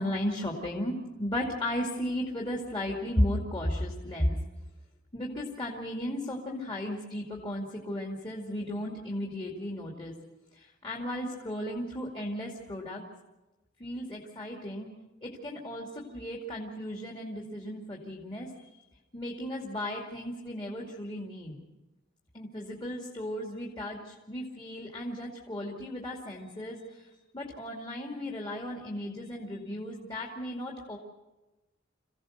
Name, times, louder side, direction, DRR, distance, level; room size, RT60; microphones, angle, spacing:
voice 1, 0.0-4.4 5.1-10.1 10.6-13.0 13.8-14.9 15.2-18.7 19.1-21.6 22.3-27.1 27.3-31.0, left 1 dB, 25° left, -2 dB, 2.5 m, -35 dB
27.5 x 16.5 x 6.6 m, 1.1 s
head